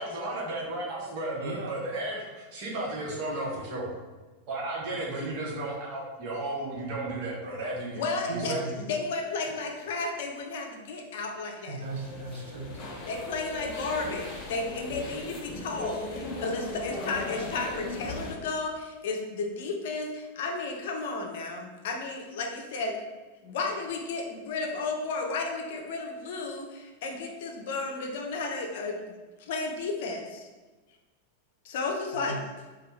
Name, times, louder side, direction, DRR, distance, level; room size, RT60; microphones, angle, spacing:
voice 1, 0.0-3.9 4.5-8.0 8.3-8.6, right 2 dB, 45° right, -4 dB, 1.2 m, -34 dB
voice 2, 1.4-1.8 8.3-8.8 11.7-13.0 32.1-32.4, right 2 dB, 60° right, 1 dB, 0.5 m, -37 dB
voice 3, 7.9-11.8 13.1-23.0 23.4-29.0 29.4-30.5 31.6-32.4, left 3 dB, 55° left, 2 dB, 0.6 m, -33 dB
sound 1, 11.8-18.3, left 2 dB, 35° left, 0.9 m, -38 dB
4.3 x 2.4 x 3.0 m, 1.3 s
figure-of-eight pair, 90°, 0 cm